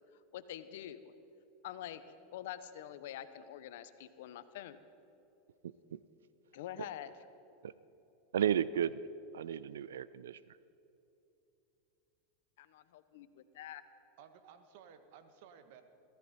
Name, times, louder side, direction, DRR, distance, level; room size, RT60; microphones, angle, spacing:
voice 1, 0.3-1.1 1.6-2.0 2.3-4.8 6.5-7.1 12.6-13.8, left 11 dB, 75° left, 12 dB, 1.0 m, -46 dB
voice 2, 5.6-6.0 7.6-7.7 8.3-9.0 9.3-10.4, right 9 dB, 90° right, 18 dB, 0.4 m, -33 dB
voice 3, 14.2-15.8, right 7 dB, 65° right, 8 dB, 1.6 m, -56 dB
22.0 x 15.0 x 4.4 m, 2.9 s
hypercardioid pair, 110°, 0 cm